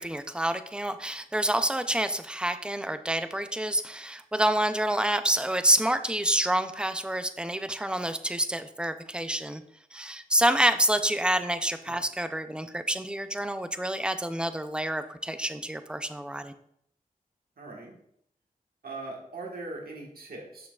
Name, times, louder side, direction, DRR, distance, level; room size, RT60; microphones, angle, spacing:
voice 1, 0.0-9.6 9.9-16.5, right 1 dB, 5° right, 10 dB, 0.5 m, -28 dB
voice 2, 17.6-17.9 18.8-20.7, right 2 dB, 75° right, -1 dB, 1.6 m, -40 dB
7.0 x 6.2 x 2.4 m, 0.70 s
cardioid pair, 45°, 15 cm